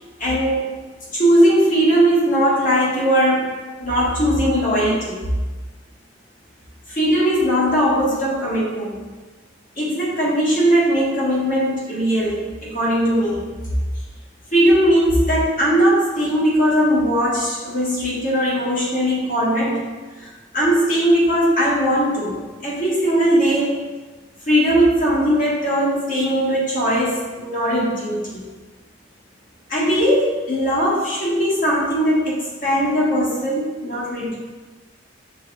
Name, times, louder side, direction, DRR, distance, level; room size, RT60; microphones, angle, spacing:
voice 1, 0.2-0.7 1.1-3.5 3.8-5.3 6.9-9.0 9.8-13.4 14.5-19.8 20.2-20.3 20.5-23.8 24.5-28.4 29.7-34.4, equal, 45° left, -7 dB, 1.4 m, -19 dB
5.9 x 3.6 x 2.3 m, 1.3 s
head